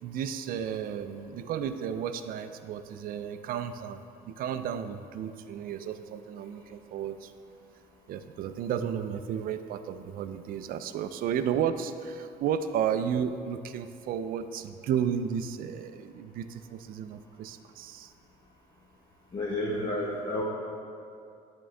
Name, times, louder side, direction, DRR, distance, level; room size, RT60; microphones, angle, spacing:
voice 1, 0.0-7.3 8.1-18.1, right 8 dB, 60° right, 10 dB, 0.4 m, -33 dB
voice 2, 19.3-20.4, left 1 dB, 30° left, -6 dB, 1.0 m, -30 dB
10.5 x 3.7 x 3.3 m, 2.4 s
cardioid pair, 110°, 17 cm